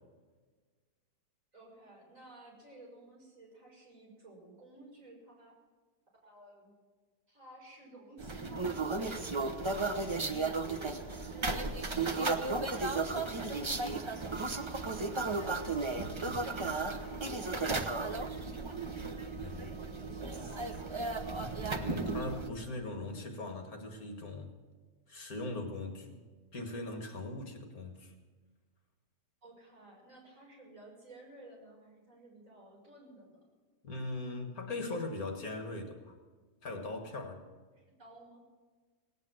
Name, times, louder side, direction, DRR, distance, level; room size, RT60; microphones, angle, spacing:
voice 1, 1.5-5.6 6.1-6.8 7.3-10.4 10.6-19.1 19.3-21.5 29.4-33.4 37.7-38.4, right 2 dB, 50° right, -3 dB, 5.9 m, -55 dB
sound 1, 8.2-22.5, right 3 dB, 30° right, 0.5 m, -34 dB
voice 2, 21.7-24.5 25.1-26.2 26.5-28.1 33.8-36.1 36.6-37.4, left 2 dB, 55° left, 4 dB, 2.0 m, -40 dB
18.0 x 9.0 x 7.7 m, 1.4 s
omnidirectional pair, 1.8 m